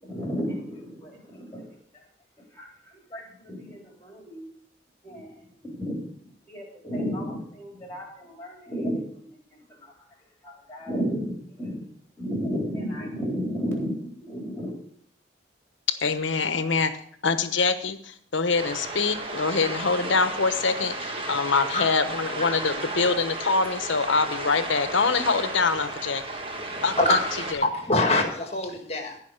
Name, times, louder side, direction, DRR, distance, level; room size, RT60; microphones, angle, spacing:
voice 1, 0.0-1.7 2.5-4.5 5.0-5.3 5.6-9.4 9.7-9.9 10.4-11.8 12.2-14.7, equal, 15° left, -1 dB, 4.0 m, -33 dB
voice 2, 15.9-16.9 17.2-26.2 26.8-27.7, left 4 dB, 85° left, 10 dB, 1.0 m, -24 dB
sound 1, 18.5-27.5, right 2 dB, 30° right, 1.3 m, -33 dB
voice 3, 26.7-27.2 27.6-29.2, left 2 dB, 35° left, 4 dB, 1.9 m, -24 dB
16.0 x 5.3 x 6.5 m, 0.62 s
head